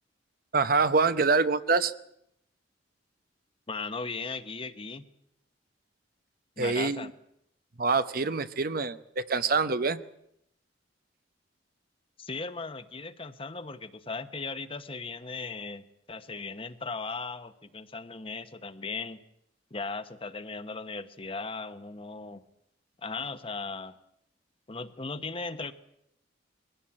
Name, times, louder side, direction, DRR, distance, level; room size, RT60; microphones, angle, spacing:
voice 1, 0.5-1.9 6.6-7.1 7.8-10.0, right 4 dB, 50° right, 12 dB, 0.8 m, -25 dB
voice 2, 3.7-5.0 6.6-7.1 12.2-19.2 19.7-22.4 23.0-24.0 24.7-25.7, left 4 dB, 30° left, 11 dB, 1.1 m, -37 dB
22.0 x 17.0 x 8.7 m, 0.77 s
head